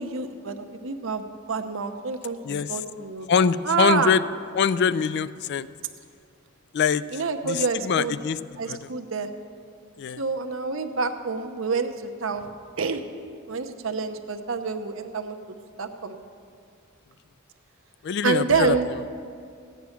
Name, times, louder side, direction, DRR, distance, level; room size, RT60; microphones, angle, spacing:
voice 1, 0.0-4.1 7.1-8.2 8.6-9.3 10.2-12.5 12.8-13.0 13.5-15.4 15.8-16.2 18.2-18.8, right 5 dB, 70° right, 7 dB, 0.8 m, -27 dB
voice 2, 2.4-2.8 3.3-4.2 4.5-5.7 6.7-7.0 7.4-8.4 8.7-8.8 10.0-10.2 18.0-18.8, left 6 dB, 55° left, 16 dB, 0.3 m, -23 dB
15.0 x 9.3 x 5.8 m, 2.3 s
head